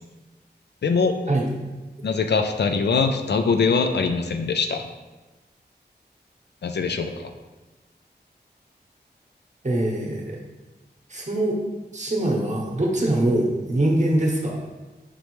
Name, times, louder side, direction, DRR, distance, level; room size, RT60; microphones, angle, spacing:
voice 1, 0.8-1.2 2.0-4.9 6.6-7.3, left 5 dB, 70° left, 7 dB, 0.4 m, -22 dB
voice 2, 9.6-10.4 11.1-11.6 11.9-14.6, right 1 dB, 40° right, -1 dB, 0.9 m, -23 dB
5.3 x 3.2 x 3.1 m, 1.2 s
wide cardioid pair, 65°, 18 cm